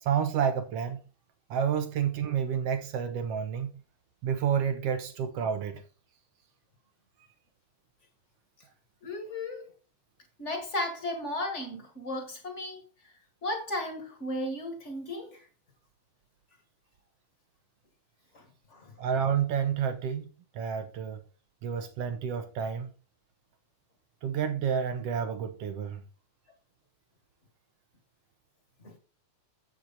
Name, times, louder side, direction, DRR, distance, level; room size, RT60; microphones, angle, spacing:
voice 1, 0.0-1.0 1.5-3.7 4.2-5.8 19.0-21.2 21.6-22.9 24.2-26.0, right 7 dB, 70° right, 1.6 m, -30 dB
voice 2, 9.0-9.7 10.4-13.1 13.4-15.5 18.3-18.9 28.8-29.0, left 1 dB, 30° left, 1.5 m, -35 dB
7.8 x 7.5 x 4.1 m
omnidirectional pair, 3.4 m